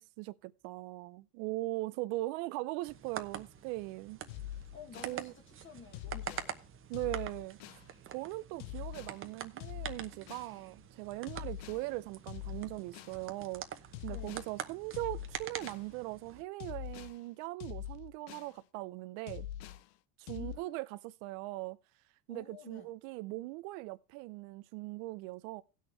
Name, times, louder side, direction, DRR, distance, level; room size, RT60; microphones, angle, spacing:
voice 1, 0.0-4.2 5.0-5.3 6.9-7.8 8.1-13.6 14.0-19.5 20.2-21.8 22.3-25.6, right 20 dB, 65° right, 0.7 m, -40 dB
sound 1, 2.8-16.4, right 9 dB, 30° right, 0.9 m, -46 dB
sound 2, 4.3-5.2 5.9-6.5 6.9-7.9 8.6-9.2 9.6-10.5 11.3-11.8 12.3-13.2 13.9-14.5 14.9-15.8 16.6-17.2 17.6-18.5 19.3-19.8 20.3-20.6, left 12 dB, 65° left, 0.8 m, -44 dB
voice 2, 4.7-6.6 14.1-14.4 20.3-20.8 22.3-22.9, left 6 dB, 25° left, 1.5 m, -52 dB
17.0 x 6.5 x 3.3 m
supercardioid pair, 120°, 45 cm